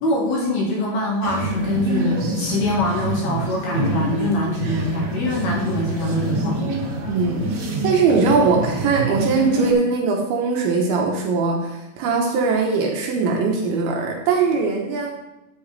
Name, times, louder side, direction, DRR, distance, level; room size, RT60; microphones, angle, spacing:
voice 1, 0.0-6.8, left 1 dB, 60° left, -2 dB, 3.0 m, -24 dB
sound 1, 1.2-9.7, right 1 dB, 55° right, 2.1 m, -26 dB
voice 2, 7.1-7.5 7.8-15.1, right 4 dB, 70° right, 1 dB, 3.1 m, -20 dB
13.5 x 8.3 x 3.3 m, 0.96 s
omnidirectional pair, 5.9 m